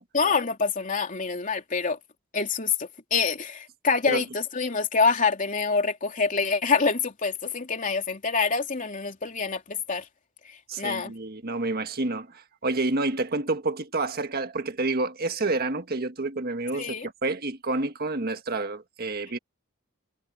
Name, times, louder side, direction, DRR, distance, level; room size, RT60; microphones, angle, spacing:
voice 1, 0.1-2.0 2.3-10.0 10.8-11.1 16.7-17.1, left 5 dB, 40° left, 3.1 m, -26 dB
voice 2, 10.7-19.4, right 2 dB, 50° right, 1.5 m, -29 dB
head